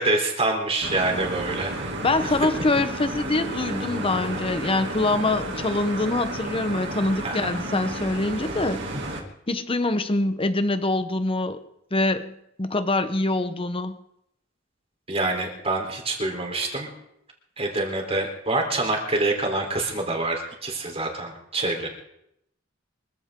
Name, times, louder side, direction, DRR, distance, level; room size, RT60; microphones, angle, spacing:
voice 1, 0.0-1.9 2.2-2.4 7.2-7.5 15.1-16.9 17.6-21.9, right 2 dB, 30° right, 2 dB, 3.8 m, -26 dB
sound 1, 0.8-9.2, right 1 dB, 65° right, 2.6 m, -32 dB
voice 2, 2.0-8.8 9.5-11.6 11.9-14.0, left 2 dB, 30° left, 10 dB, 1.1 m, -24 dB
24.5 x 15.0 x 3.8 m, 0.77 s
head